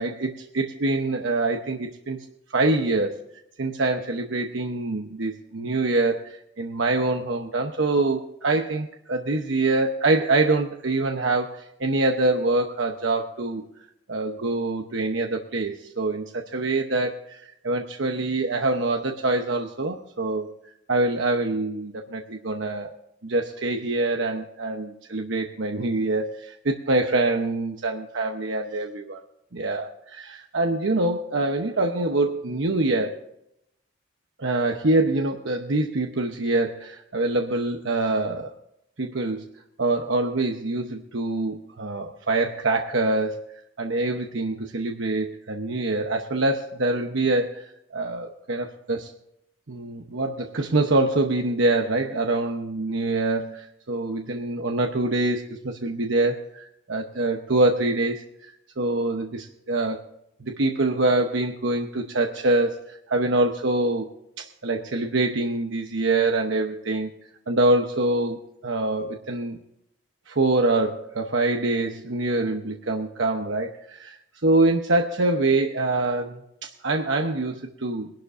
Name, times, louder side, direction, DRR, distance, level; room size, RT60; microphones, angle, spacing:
voice 1, 0.0-2.2 2.5-3.2 3.6-13.6 14.1-20.5 20.9-22.9 23.2-29.2 29.5-33.2 34.4-38.5 39.0-39.5 39.8-43.5 43.8-49.1 49.7-60.1 60.4-64.1 64.4-67.1 67.5-69.6 70.3-78.1, right 2 dB, 75° right, 3 dB, 1.0 m, -25 dB
22.5 x 11.5 x 2.6 m, 0.81 s
head